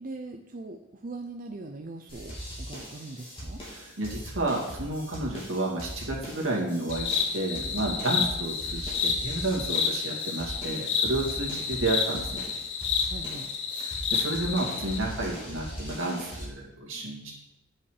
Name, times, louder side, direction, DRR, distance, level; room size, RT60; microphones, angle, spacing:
voice 1, 0.0-3.6 8.2-8.3 11.4-11.7 13.1-13.5, right 2 dB, 40° right, 4 dB, 0.5 m, -41 dB
sound 1, 2.1-16.4, equal, 25° left, 2.8 m, -40 dB
voice 2, 3.7-12.5 13.7-17.3, right 2 dB, 70° right, -2 dB, 2.4 m, -31 dB
sound 2, 6.9-15.0, left 6 dB, 60° left, 1.0 m, -30 dB
9.5 x 5.6 x 4.9 m, 0.91 s
head